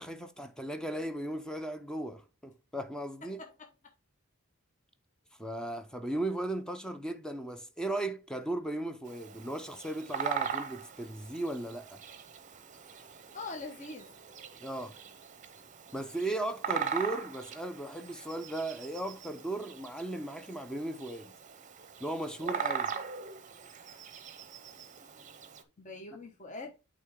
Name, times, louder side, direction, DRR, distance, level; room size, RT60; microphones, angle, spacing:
voice 1, 0.0-3.4 5.4-12.0 14.6-15.0 15.9-21.3 22.0-22.9, right 1 dB, 5° left, 0.5 m, -36 dB
Bird vocalization bird call bird song, 9.0-25.6, right 7 dB, 35° right, 0.7 m, -40 dB
voice 2, 13.3-14.1 24.7-25.3 25.8-26.7, left 3 dB, 35° left, 1.1 m, -44 dB
8.5 x 3.7 x 3.6 m
head